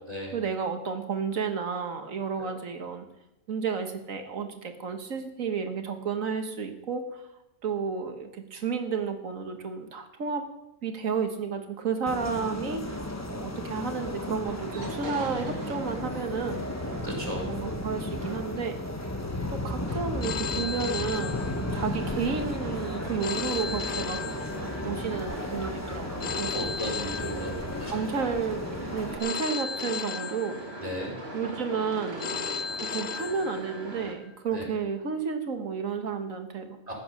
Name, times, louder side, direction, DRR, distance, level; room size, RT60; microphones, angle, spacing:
voice 1, 0.3-3.1 3.5-7.2 7.6-10.5 10.8-16.9 17.3-18.8 19.5-24.2 24.8-26.7 27.3-30.6 31.3-32.3 32.9-36.8, right 5 dB, 75° right, 6 dB, 1.8 m, -32 dB
sound 1, 12.1-29.2, left 1 dB, 15° left, 0.9 m, -34 dB
sound 2, 14.4-34.1, right 1 dB, 50° right, 2.6 m, -41 dB
voice 2, 17.0-17.5 26.5-28.1 30.8-31.1 34.5-34.6 36.9-37.0, equal, 30° right, -1 dB, 3.7 m, -35 dB
Telephone, 20.2-22.1 23.2-25.1 26.2-28.1 29.2-31.1 32.2-34.1, left 6 dB, 50° left, 0.5 m, -35 dB
15.5 x 9.5 x 6.4 m, 0.89 s
omnidirectional pair, 1.4 m